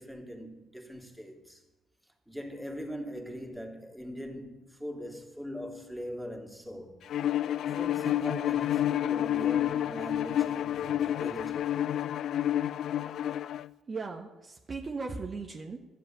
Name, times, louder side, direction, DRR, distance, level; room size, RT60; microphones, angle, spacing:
voice 1, 0.0-1.6 2.3-7.0 7.7-11.7, equal, 5° right, 2.9 m, -41 dB
Bowed string instrument, 7.1-13.7, left 11 dB, 60° left, 0.4 m, -29 dB
voice 2, 13.9-15.8, right 4 dB, 40° right, 1.4 m, -37 dB
13.0 x 7.7 x 8.8 m
hypercardioid pair, 50°, 0 cm